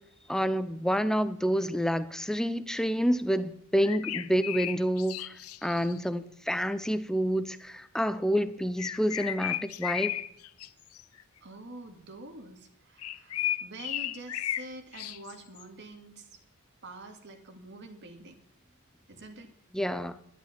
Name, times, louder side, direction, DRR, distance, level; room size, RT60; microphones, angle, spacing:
voice 1, 0.3-10.2 19.7-20.2, equal, 5° left, 0.7 m, -28 dB
sound 1, 3.8-6.0 8.8-10.7 10.9-11.2 13.0-14.7 14.9-15.6, left 12 dB, 80° left, 0.7 m, -34 dB
voice 2, 11.4-16.4 16.8-18.4 19.1-19.5, right 2 dB, 55° right, 2.3 m, -46 dB
12.0 x 11.0 x 5.9 m
head